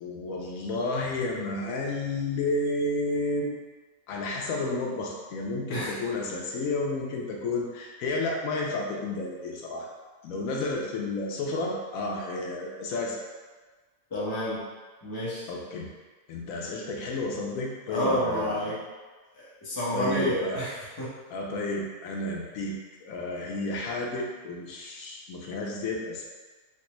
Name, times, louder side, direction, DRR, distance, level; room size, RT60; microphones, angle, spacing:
voice 1, 0.0-3.6 4.1-9.9 10.2-13.2 15.5-15.9 16.3-18.6 19.9-20.6 21.3-26.2, left 2 dB, 85° left, -1 dB, 1.0 m, -31 dB
voice 2, 14.1-14.6 15.0-15.5 17.9-18.8 19.4-21.1, equal, 20° left, -8 dB, 0.6 m, -29 dB
3.3 x 2.2 x 3.0 m, 1.3 s
omnidirectional pair, 1.4 m